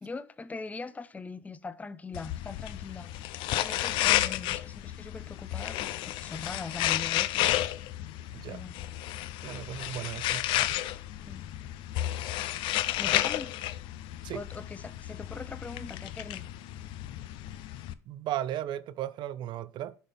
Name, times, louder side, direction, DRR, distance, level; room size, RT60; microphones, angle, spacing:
voice 1, 0.0-7.8 8.4-8.9 11.2-11.4 13.0-13.6 14.3-16.4, left 4 dB, 15° left, 0.5 m, -42 dB
sound 1, 2.1-17.9, left 14 dB, 60° left, 0.5 m, -32 dB
voice 2, 9.4-10.8 14.2-14.4 18.1-20.0, right 12 dB, 55° right, 0.4 m, -36 dB
10.5 x 4.2 x 3.4 m
hypercardioid pair, 80°, 9 cm